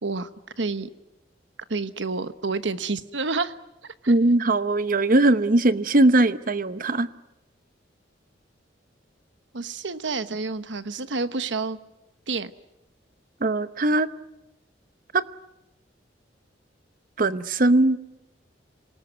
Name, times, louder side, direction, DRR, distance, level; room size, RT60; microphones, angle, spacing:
voice 1, 0.6-0.9 1.7-3.6 3.8-4.1 9.5-11.8 12.3-12.5, right 4 dB, 80° right, 12 dB, 1.2 m, -29 dB
voice 2, 4.1-7.1 13.4-14.1 15.1-15.2 17.2-18.0, right 2 dB, 50° right, 14 dB, 0.9 m, -20 dB
27.0 x 19.0 x 9.4 m, 0.96 s
head